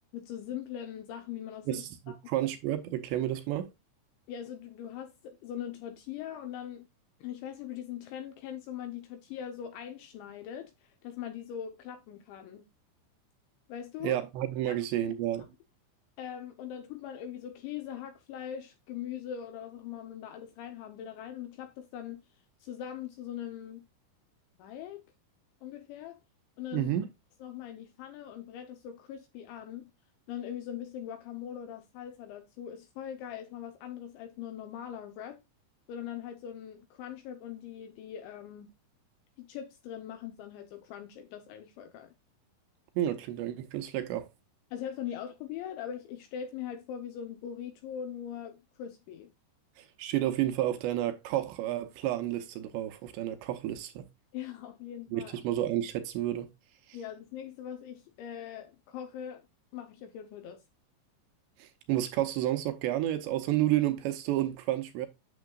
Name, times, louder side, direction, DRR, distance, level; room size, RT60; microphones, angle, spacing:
voice 1, 0.1-1.8 2.1-2.2 4.3-6.9 7.2-12.6 13.7-14.2 14.7-14.8 15.0-15.1 16.2-22.2 22.6-23.9 24.6-25.0 25.6-26.2 26.6-26.9 27.4-29.9 30.3-35.4 35.9-38.7 39.4-42.1 44.7-49.3 54.3-55.4 56.9-59.5 59.7-60.6, left 9 dB, 80° left, 3.0 m, -41 dB
voice 2, 2.3-3.7 14.0-15.5 26.7-27.1 43.0-44.3 49.8-54.1 55.1-56.5 56.9-57.0 61.6-65.1, right 13 dB, 80° right, 2.7 m, -31 dB
9.2 x 6.9 x 2.3 m
omnidirectional pair, 5.5 m